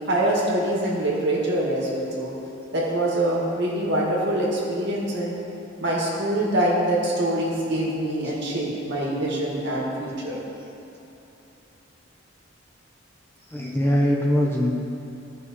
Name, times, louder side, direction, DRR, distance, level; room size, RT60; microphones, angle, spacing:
voice 1, 0.1-2.3 2.7-5.4 5.8-10.4, right 1 dB, 60° right, -4 dB, 1.9 m, -24 dB
voice 2, 13.5-14.8, equal, 10° left, -2 dB, 0.8 m, -22 dB
15.0 x 5.8 x 3.1 m, 3.0 s
head